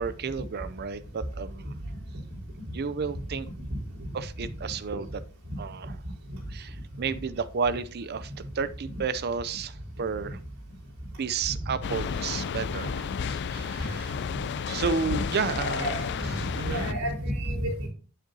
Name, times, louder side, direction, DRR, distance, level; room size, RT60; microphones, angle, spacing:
voice 1, 0.0-1.8 2.7-3.5 4.1-5.1 5.6-5.9 6.5-10.4 11.2-14.2 14.6-16.0 16.5-16.8, right 5 dB, 50° right, 14 dB, 0.5 m, -32 dB
sound 1, 11.8-16.9, left 6 dB, 50° left, 0.4 m, -32 dB
voice 2, 15.8-16.3 16.6-17.9, equal, 75° right, -4 dB, 4.5 m, -31 dB
9.1 x 7.4 x 2.7 m, 0.40 s
head